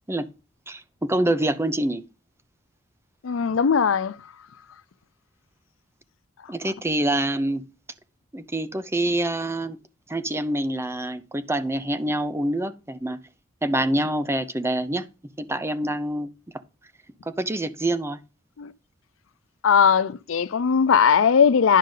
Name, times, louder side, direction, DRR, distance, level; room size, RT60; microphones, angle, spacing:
voice 1, 0.7-2.0 6.5-7.6 8.3-9.8 10.1-13.2 13.6-15.1 15.4-16.3 17.3-18.2, right 1 dB, 15° right, 0.6 m, -26 dB
voice 2, 3.2-4.2 18.6-18.7 19.6-21.8, left 6 dB, 70° left, 0.5 m, -19 dB
10.5 x 6.4 x 3.8 m
head